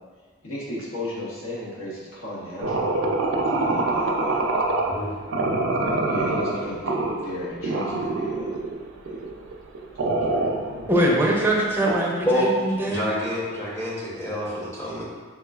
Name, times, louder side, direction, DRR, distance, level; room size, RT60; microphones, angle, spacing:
voice 1, 0.4-2.9 3.5-4.4 6.1-6.8 7.2-8.6 9.0-9.2 10.0-10.5 11.4-11.5, left 1 dB, 80° left, -7 dB, 1.1 m, -35 dB
sound 1, 2.6-5.0 5.3-7.2 7.6-8.8 9.1-12.0, right 2 dB, 70° right, 0.4 m, -25 dB
voice 2, 10.9-13.1, right 1 dB, 10° right, -3 dB, 0.5 m, -22 dB
voice 3, 12.9-15.0, left 1 dB, 15° left, -6 dB, 0.8 m, -27 dB
3.8 x 3.5 x 2.3 m, 1.5 s
head